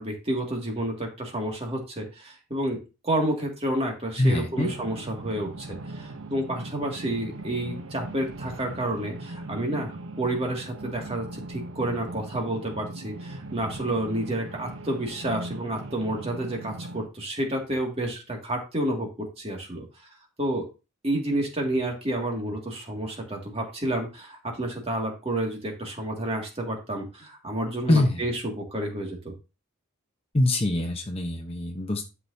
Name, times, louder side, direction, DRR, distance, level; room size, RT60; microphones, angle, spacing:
voice 1, 0.0-19.8 20.4-20.7 21.0-29.3, right 1 dB, 30° right, 1 dB, 2.1 m, -30 dB
voice 2, 4.2-4.7 27.9-28.3 30.3-32.1, left 1 dB, 25° left, 4 dB, 0.9 m, -24 dB
sound 1, 4.5-17.1, right 2 dB, 65° right, 0.9 m, -39 dB
11.5 x 6.0 x 2.7 m, 0.29 s
head